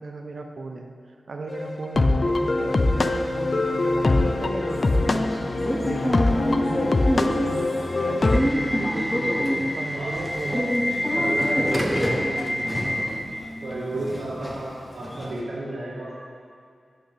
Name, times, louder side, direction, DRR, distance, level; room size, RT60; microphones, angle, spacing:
voice 1, 0.0-10.7, right 3 dB, 65° right, 4 dB, 0.7 m, -36 dB
sound 1, 1.5-8.4, left 2 dB, 40° left, 0.4 m, -23 dB
Human voice, 4.0-9.3, right 1 dB, 15° right, 1.8 m, -40 dB
Subway metro underground / Alarm, 5.6-15.4, equal, 10° left, 0.9 m, -26 dB
voice 2, 10.0-10.6 11.1-13.2 13.6-14.7 14.9-16.1, right 1 dB, 90° right, -10 dB, 2.2 m, -32 dB
11.0 x 6.4 x 3.4 m, 2.2 s
wide cardioid pair, 120°, 0 cm